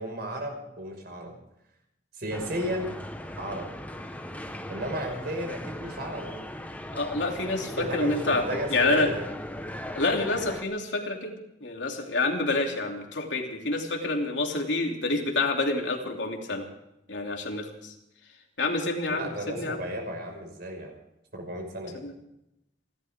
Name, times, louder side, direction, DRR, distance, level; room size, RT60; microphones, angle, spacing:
voice 1, 0.0-1.3 2.1-3.0 3.4-3.7 4.7-6.5 7.6-9.3 19.1-21.0 21.3-22.0, right 1 dB, 60° right, 3 dB, 5.5 m, -34 dB
sound 1, 2.3-10.6, left 1 dB, 10° left, 1.3 m, -39 dB
voice 2, 6.9-8.4 8.7-9.1 9.9-16.7 17.1-17.9 18.6-19.8 22.0-22.1, left 2 dB, 80° left, 1 dB, 3.0 m, -28 dB
29.0 x 12.5 x 3.7 m, 0.86 s
head